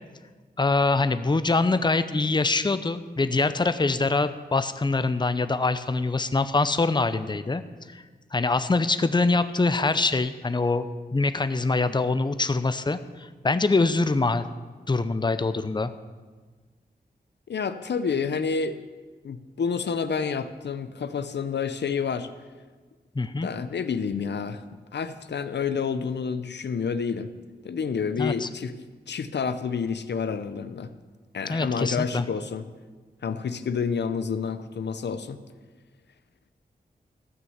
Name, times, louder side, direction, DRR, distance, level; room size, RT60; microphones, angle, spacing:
voice 1, 0.6-7.6 7.9-8.0 8.3-14.4 14.9-15.9 23.1-23.5 28.2-28.5 31.5-32.2, left 3 dB, 25° left, 12 dB, 0.6 m, -24 dB
voice 2, 17.5-18.8 19.2-22.3 23.4-24.6 24.9-27.3 27.6-28.7 29.1-30.9 31.3-32.6 33.2-35.4, left 6 dB, 85° left, 11 dB, 0.6 m, -29 dB
13.5 x 6.3 x 7.9 m, 1.4 s
wide cardioid pair, 65°, 17 cm